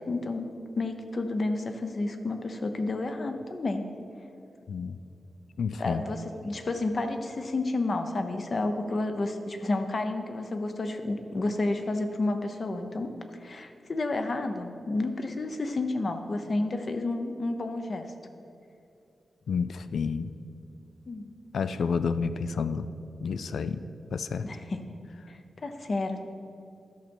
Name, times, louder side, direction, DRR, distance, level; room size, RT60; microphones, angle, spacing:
voice 1, 0.1-0.5 0.8-3.8 5.8-13.1 13.4-18.0 21.1-21.3 24.4-24.8 25.3-26.2, left 2 dB, 45° left, 7 dB, 0.7 m, -30 dB
voice 2, 5.6-6.0 19.5-20.3 21.5-22.9 23.2-23.8 24.1-24.5, left 5 dB, 85° left, 12 dB, 0.3 m, -30 dB
11.5 x 6.5 x 4.4 m, 2.7 s
wide cardioid pair, 130°, 0 cm